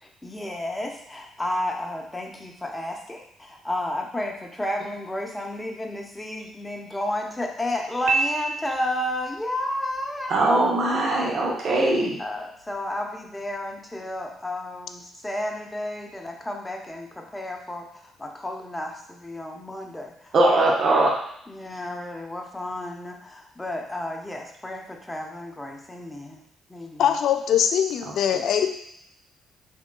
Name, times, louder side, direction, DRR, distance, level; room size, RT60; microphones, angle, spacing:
voice 1, 0.0-10.4 12.2-20.4 21.5-26.4 26.7-27.0, left 1 dB, 15° left, 1 dB, 0.8 m, -32 dB
Piano, 8.1-9.2, right 4 dB, 80° right, 0.3 m, -26 dB
voice 2, 10.3-12.2 20.3-21.1, right 2 dB, 55° right, -2 dB, 1.0 m, -20 dB
voice 3, 27.0-28.7, left 9 dB, 65° left, 8 dB, 0.3 m, -22 dB
4.4 x 3.6 x 2.3 m, 0.71 s
hypercardioid pair, 55°, 0 cm